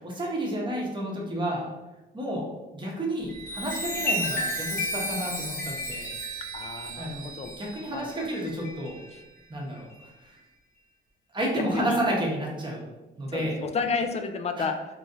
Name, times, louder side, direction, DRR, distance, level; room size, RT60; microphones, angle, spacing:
voice 1, 0.0-1.7 2.1-6.2 7.0-7.3 7.6-9.0 9.5-9.9 10.2-10.3 11.3-12.9 13.2-13.6 14.6-14.7, right 1 dB, 25° right, -2 dB, 0.9 m, -31 dB
Chime, 3.2-9.2 9.8-10.0, equal, 50° left, 1.2 m, -33 dB
voice 2, 6.5-7.5 7.9-8.3 9.1-9.2 11.6-12.0 13.3-14.7, left 5 dB, 35° left, 7 dB, 0.3 m, -31 dB
3.1 x 2.5 x 2.6 m, 1.1 s
cardioid pair, 90°, 20 cm